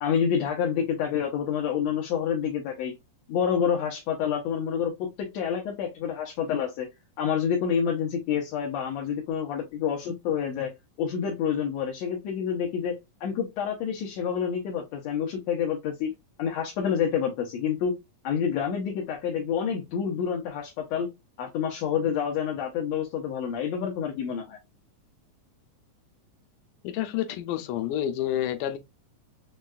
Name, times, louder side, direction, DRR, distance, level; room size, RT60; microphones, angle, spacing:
voice 1, 0.0-2.9 3.3-6.9 7.2-10.7 11.0-16.1 16.4-17.9 18.2-21.1 21.4-24.6, left 7 dB, 70° left, 1.7 m, -28 dB
voice 2, 26.8-28.8, left 11 dB, 90° left, 2.1 m, -29 dB
6.3 x 2.3 x 2.2 m
omnidirectional pair, 3.5 m